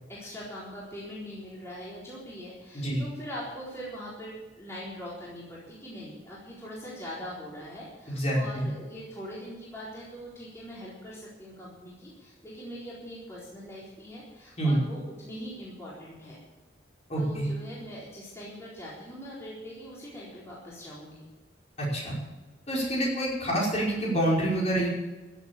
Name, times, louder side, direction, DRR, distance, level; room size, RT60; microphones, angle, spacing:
voice 1, 0.1-16.4 17.2-21.3, equal, 15° left, -8 dB, 4.1 m, -42 dB
voice 2, 8.1-8.7 14.6-14.8 17.1-17.5 21.8-22.2 22.7-24.9, right 1 dB, 35° left, -4 dB, 5.1 m, -27 dB
15.0 x 8.2 x 8.6 m, 1.1 s
head